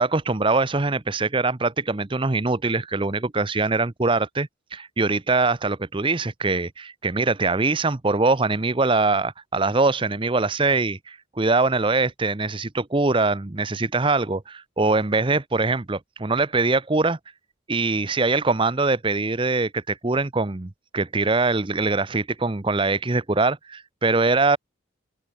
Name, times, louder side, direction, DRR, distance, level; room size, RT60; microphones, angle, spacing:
voice 1, 0.0-17.2 17.7-24.6, right 3 dB, 25° right, 0.7 m, -23 dB
open air
head